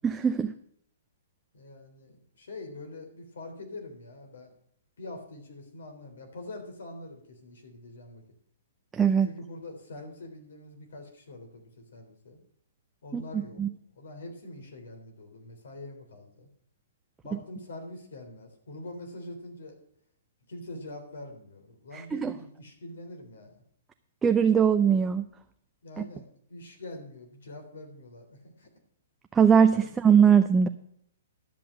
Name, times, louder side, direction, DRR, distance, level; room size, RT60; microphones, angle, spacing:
voice 1, 0.0-0.5 8.9-9.3 13.1-13.2 13.6-13.7 22.1-22.3 24.2-25.2 26.0-26.1 29.3-30.7, right 7 dB, 15° right, 7 dB, 0.5 m, -21 dB
voice 2, 1.5-4.5 5.0-8.2 9.2-12.4 13.0-13.6 13.9-16.5 17.2-19.7 20.5-23.6 25.8-28.7, left 2 dB, 80° left, 3 dB, 3.5 m, -44 dB
12.0 x 5.9 x 8.8 m, 0.69 s
hypercardioid pair, 140°, 0 cm